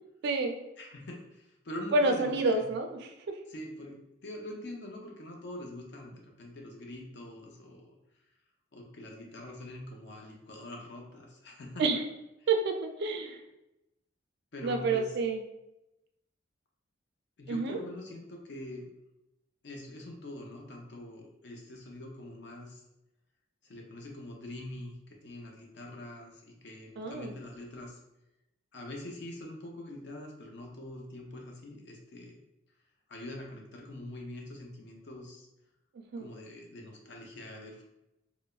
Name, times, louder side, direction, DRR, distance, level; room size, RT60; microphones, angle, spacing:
voice 1, 0.2-0.5 1.9-3.4 11.8-12.0 12.5-13.4 14.6-15.4 17.5-17.8 27.0-27.3 36.1-36.3, right 3 dB, 60° right, 5 dB, 0.3 m, -29 dB
voice 2, 0.8-2.7 3.5-8.0 8.7-11.9 14.5-15.2 17.4-18.9 19.6-22.8 23.6-28.0 28.7-32.4 33.1-35.5 36.2-37.8, left 1 dB, 60° left, 0 dB, 0.6 m, -44 dB
3.1 x 2.0 x 2.3 m, 0.90 s
head